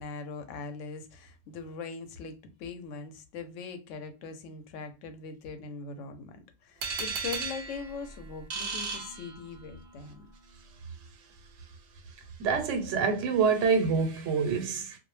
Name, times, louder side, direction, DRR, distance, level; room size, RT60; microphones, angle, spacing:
voice 1, 0.0-10.3, left 5 dB, 85° left, 0.9 m, -41 dB
sound 1, 6.8-9.8, right 5 dB, 55° right, 0.7 m, -36 dB
voice 2, 12.4-15.0, right 5 dB, 80° right, 1.0 m, -26 dB
2.3 x 2.0 x 3.1 m
omnidirectional pair, 1.2 m